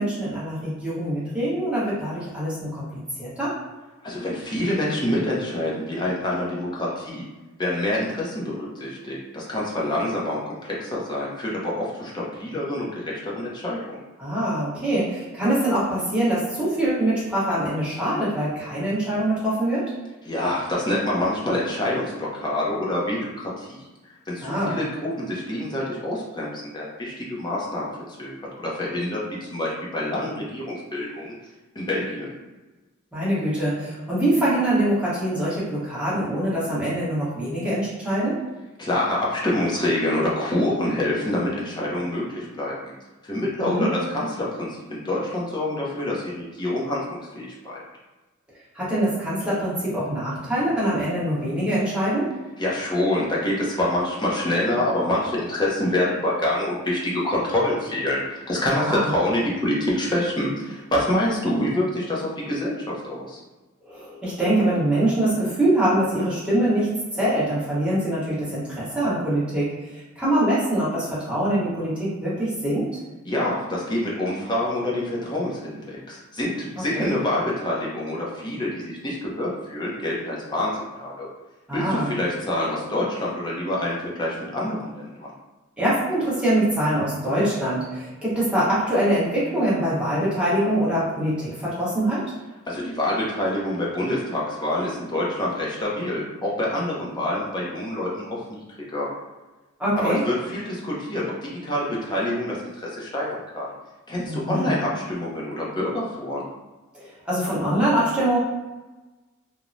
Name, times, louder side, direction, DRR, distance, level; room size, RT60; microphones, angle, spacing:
voice 1, 0.0-2.9 3.2-3.5 14.2-19.9 24.4-24.8 33.1-38.4 43.6-43.9 48.7-52.3 58.7-59.1 63.8-72.9 76.9-77.2 81.7-82.1 85.8-92.2 99.8-100.2 104.2-104.7 106.9-108.4, right 1 dB, 5° right, -9 dB, 0.9 m, -24 dB
voice 2, 4.0-7.3 7.6-14.0 20.3-23.9 24.3-27.9 28.2-28.3 28.6-31.3 31.8-32.3 38.8-42.9 43.2-47.8 52.6-63.4 73.3-80.7 81.0-81.3 81.7-85.3 92.7-98.6 98.9-99.1 100.0-103.7 104.1-106.5, left 1 dB, 20° left, -5 dB, 0.6 m, -26 dB
3.0 x 2.1 x 2.5 m, 1.2 s
head